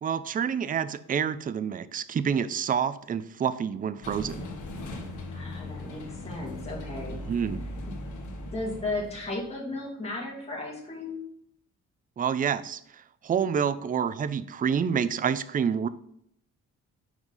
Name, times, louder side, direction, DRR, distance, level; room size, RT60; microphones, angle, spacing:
voice 1, 0.0-4.4 7.3-7.6 12.2-12.8 13.2-15.9, right 7 dB, 30° right, 15 dB, 0.4 m, -28 dB
sound 1, 4.0-9.5, left 1 dB, 70° left, 1.5 m, -38 dB
voice 2, 5.3-7.2 7.8-7.9 8.5-11.2, left 2 dB, 20° left, -4 dB, 2.4 m, -35 dB
6.1 x 5.2 x 3.9 m, 0.72 s
cardioid pair, 110°, 31 cm